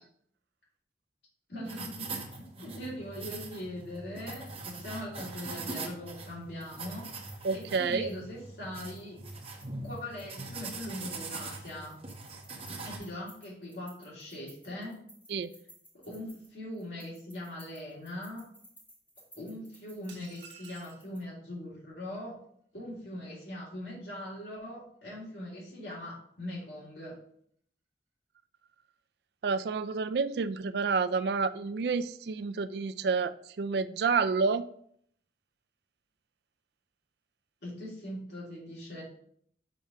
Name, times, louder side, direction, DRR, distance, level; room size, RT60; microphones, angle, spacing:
voice 1, 1.5-7.1 7.5-9.2 9.8-12.0 12.7-15.1 15.9-18.5 19.3-22.4 22.7-27.1 37.6-39.0, left 1 dB, 70° left, -5 dB, 3.1 m, -41 dB
sound 1, 1.6-13.0, right 3 dB, 30° right, 0.9 m, -42 dB
sound 2, 1.7-3.5 3.8-3.9 4.3-5.0 5.4-8.2 8.6-11.1 11.4-21.2, equal, 10° left, 1.6 m, -58 dB
voice 2, 7.4-8.1 15.3-15.5 29.4-34.7, right 5 dB, 65° right, 13 dB, 0.4 m, -29 dB
sound 3, 20.1-21.1, right 6 dB, 80° right, 1.1 m, -51 dB
6.3 x 3.4 x 5.4 m, 0.65 s
head